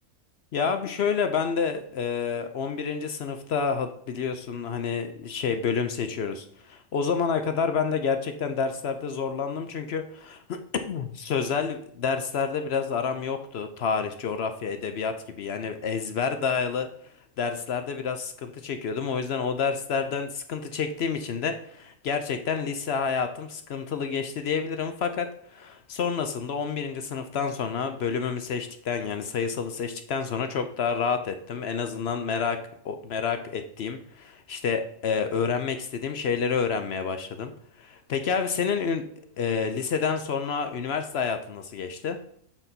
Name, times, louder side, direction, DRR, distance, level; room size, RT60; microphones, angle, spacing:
voice 1, 0.5-16.9 17.4-32.6 32.8-37.5 37.8-39.0 39.4-42.2, left 6 dB, 60° left, 8 dB, 0.7 m, -29 dB
7.4 x 4.2 x 3.9 m, 0.66 s
omnidirectional pair, 1.5 m